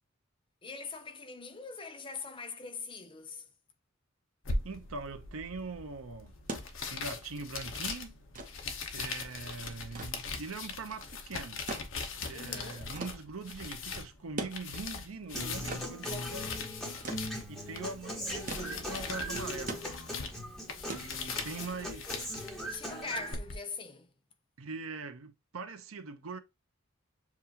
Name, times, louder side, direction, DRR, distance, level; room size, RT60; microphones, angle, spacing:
voice 1, 0.6-3.5 12.3-12.9 18.1-19.2 22.6-24.1, left 4 dB, 25° left, 0.6 m, -43 dB
sound 1, 4.4-23.5, left 4 dB, 65° left, 0.8 m, -41 dB
voice 2, 4.6-6.3 6.9-8.2 8.9-11.6 12.2-16.8 17.5-19.8 20.9-22.7 24.6-26.4, right 3 dB, 85° right, 0.7 m, -42 dB
sound 2, 6.2-21.8 23.0-23.1, right 2 dB, 40° right, 0.9 m, -44 dB
Human voice / Acoustic guitar, 15.3-23.3, equal, ahead, 1.2 m, -40 dB
7.1 x 2.4 x 2.8 m
head